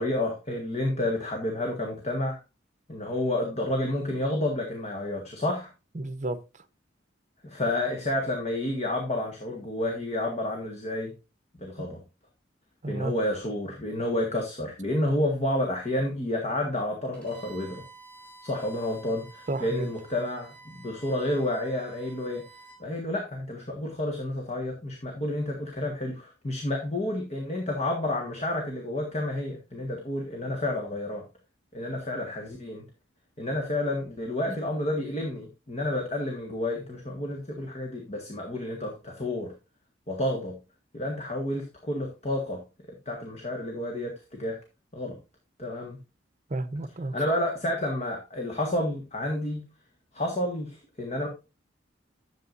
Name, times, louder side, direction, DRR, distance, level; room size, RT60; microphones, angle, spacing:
voice 1, 0.0-2.4 2.9-5.7 7.4-11.1 11.6-12.0 12.9-17.8 18.4-22.4 22.8-31.2 31.7-32.8 33.4-39.5 40.1-40.6 40.9-42.6 42.9-44.6 44.9-45.2 45.6-46.0 47.1-49.7 50.1-51.3, left 1 dB, 35° left, 1.7 m, -30 dB
voice 2, 5.9-6.4 11.8-11.9 12.8-13.1 19.5-19.9 34.5-34.6 46.5-47.1, right 2 dB, 40° right, 0.8 m, -32 dB
Bowed string instrument, 17.1-22.8, right 3 dB, 5° left, 5.2 m, -51 dB
11.5 x 7.6 x 2.6 m
head